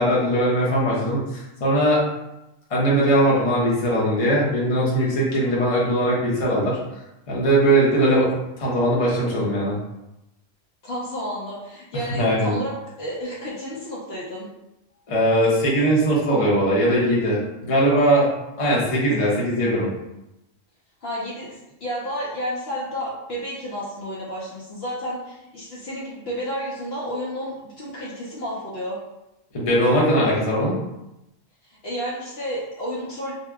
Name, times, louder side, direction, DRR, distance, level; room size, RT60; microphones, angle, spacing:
voice 1, 0.0-2.0 2.7-6.8 7.3-8.3 8.6-9.7 12.2-12.5 15.1-18.3 18.6-19.9 29.5-30.7, right 1 dB, 30° left, -6 dB, 0.7 m, -20 dB
voice 2, 10.8-14.5 21.0-29.0 31.6-33.3, equal, 60° left, -6 dB, 0.9 m, -31 dB
2.7 x 2.2 x 3.5 m, 0.93 s
omnidirectional pair, 1.3 m